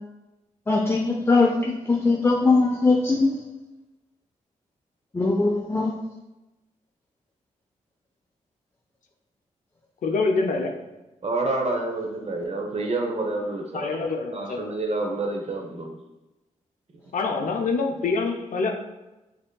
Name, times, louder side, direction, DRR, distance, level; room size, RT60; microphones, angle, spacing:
voice 1, 0.7-3.3 5.1-5.9, left 3 dB, 15° left, -1 dB, 0.5 m, -21 dB
voice 2, 10.0-10.9 13.7-14.7 17.1-18.7, left 3 dB, 65° left, 3 dB, 0.5 m, -25 dB
voice 3, 11.2-13.9 14.3-15.9, right 2 dB, 50° right, 2 dB, 0.8 m, -28 dB
5.0 x 2.8 x 2.2 m, 1.0 s
supercardioid pair, 45°, 14 cm